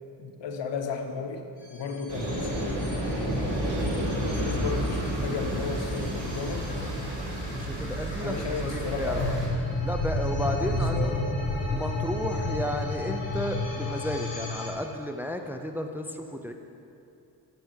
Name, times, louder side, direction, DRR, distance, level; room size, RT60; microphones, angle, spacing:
voice 1, 0.2-1.4 1.7-3.6 4.2-6.7 8.2-9.5 10.6-11.2, left 5 dB, 80° left, 5 dB, 1.0 m, -34 dB
sound 1, 1.6-14.7, left 2 dB, 60° left, 2.1 m, -33 dB
sound 2, 2.1-9.5, right 1 dB, 85° right, 2.3 m, -30 dB
voice 2, 7.5-9.3 9.8-11.2 11.7-16.5, left 1 dB, 5° right, 4 dB, 0.5 m, -33 dB
8.0 x 5.8 x 7.3 m, 2.7 s
cardioid pair, 100°, 42 cm